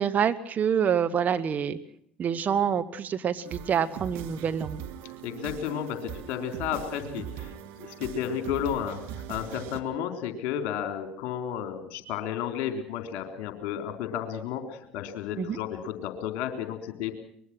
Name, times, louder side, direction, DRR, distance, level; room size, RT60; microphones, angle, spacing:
voice 1, 0.0-1.8 2.2-4.8 15.4-15.6, right 8 dB, 35° right, 9 dB, 1.5 m, -26 dB
sound 1, 3.4-9.8, right 10 dB, 60° right, 1.8 m, -40 dB
voice 2, 5.2-17.1, left 9 dB, 55° left, 6 dB, 3.7 m, -33 dB
24.0 x 21.5 x 6.2 m, 0.68 s
figure-of-eight pair, 65°, 5 cm